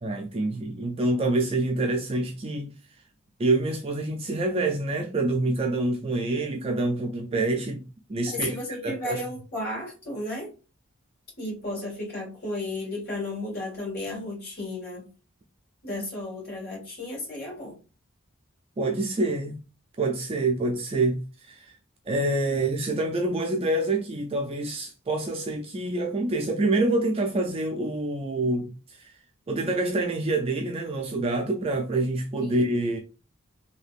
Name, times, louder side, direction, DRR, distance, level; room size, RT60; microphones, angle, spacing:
voice 1, 0.0-2.7 3.4-7.8 8.1-8.6 8.8-9.2 18.8-19.6 20.0-21.7 22.1-29.1 29.5-33.0, right 2 dB, 30° right, 0.3 m, -26 dB
voice 2, 8.3-10.5 11.4-15.1 15.8-17.8 32.4-32.6, left 1 dB, 50° left, 1.9 m, -33 dB
3.3 x 2.8 x 2.4 m
head